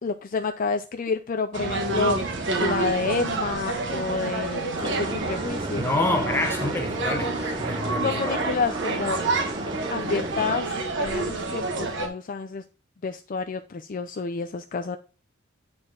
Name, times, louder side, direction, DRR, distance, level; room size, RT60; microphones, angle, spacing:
voice 1, 0.0-2.2 2.6-5.8 8.0-9.2 9.9-12.6 13.0-15.0, left 4 dB, 40° left, 0.4 m, -29 dB
sound 1, 1.5-12.1, right 3 dB, 55° right, 1.5 m, -28 dB
sound 2, 4.7-10.6, right 2 dB, 20° right, 0.5 m, -34 dB
voice 2, 5.8-8.4, left 2 dB, 10° left, 1.0 m, -27 dB
8.8 x 4.3 x 3.6 m
head